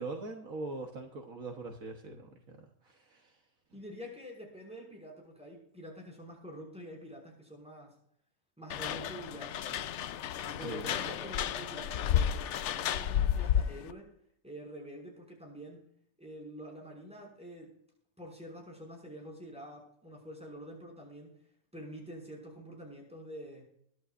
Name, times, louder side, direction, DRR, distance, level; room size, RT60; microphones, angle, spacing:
voice 1, 0.0-3.4 10.6-11.3, right 3 dB, 65° right, 3 dB, 1.6 m, -42 dB
voice 2, 3.7-7.9 8.6-9.9 10.4-14.1 14.4-15.9 16.2-17.7 18.2-21.4 21.7-23.7, equal, 5° right, -1 dB, 5.8 m, -47 dB
sound 1, 8.7-13.9, left 9 dB, 65° left, 0.8 m, -32 dB
22.0 x 11.0 x 2.5 m, 0.68 s
omnidirectional pair, 1.6 m